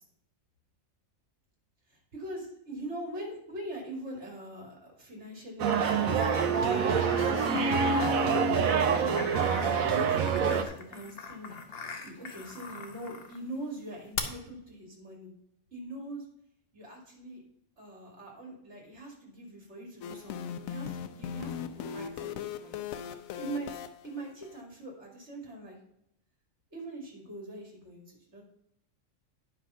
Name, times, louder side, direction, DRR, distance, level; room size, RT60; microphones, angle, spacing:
voice 1, 1.9-8.5 8.8-9.6 9.9-15.3 15.7-16.2 16.7-17.4 17.8-22.8 23.4-23.7 24.0-25.8 26.7-28.4, right 1 dB, 55° right, -1 dB, 2.9 m, -42 dB
sound 1, 5.6-10.6, right 6 dB, 85° right, 1.2 m, -26 dB
sound 2, 5.7-13.4 14.2-14.3, left 5 dB, 50° left, 1.1 m, -41 dB
sound 3, 20.0-24.6, left 8 dB, 85° left, 1.0 m, -39 dB
10.0 x 5.2 x 5.7 m, 0.74 s
omnidirectional pair, 1.4 m